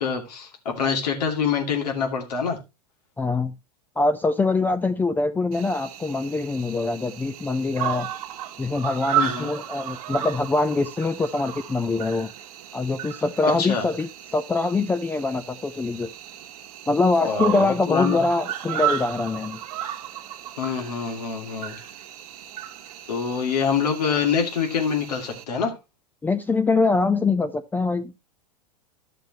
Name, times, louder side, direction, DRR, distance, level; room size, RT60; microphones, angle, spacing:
voice 1, 0.0-2.6 9.2-9.5 13.4-13.9 17.2-18.2 20.6-21.8 23.1-25.7, left 6 dB, 75° left, 2.6 m, -25 dB
voice 2, 3.2-3.5 4.0-8.1 8.6-12.3 12.7-16.1 16.9-19.6 26.2-28.1, left 3 dB, 10° left, 0.4 m, -24 dB
Cricket, 5.5-25.4, right 10 dB, 60° right, 1.3 m, -34 dB
11.5 x 6.8 x 3.0 m
hypercardioid pair, 110°, 21 cm